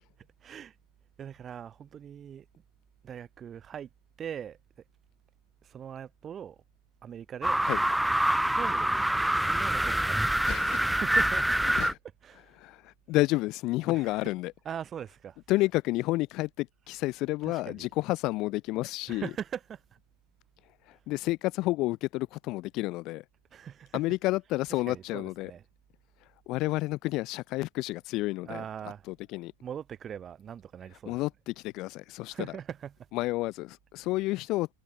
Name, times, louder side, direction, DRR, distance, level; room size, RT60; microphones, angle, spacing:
voice 1, 0.4-0.7 1.2-2.4 3.0-3.9 4.2-4.6 5.6-6.6 7.0-7.6 8.5-11.6 12.2-12.5 13.8-14.3 14.6-15.7 17.4-17.9 19.1-19.8 23.5-24.1 24.7-25.6 28.5-29.0 29.6-31.2 32.3-32.9, right 8 dB, 25° right, 1.0 m, -41 dB
sound 1, 7.4-11.9, right 1 dB, ahead, 0.4 m, -26 dB
voice 2, 10.4-10.9 11.3-11.4 11.8-12.0 12.6-14.5 15.5-19.3 20.9-23.2 23.9-25.5 26.5-28.6 29.1-29.5 31.0-32.5 33.1-34.7, left 19 dB, 40° left, 0.9 m, -30 dB
figure-of-eight pair, 90°, 0 cm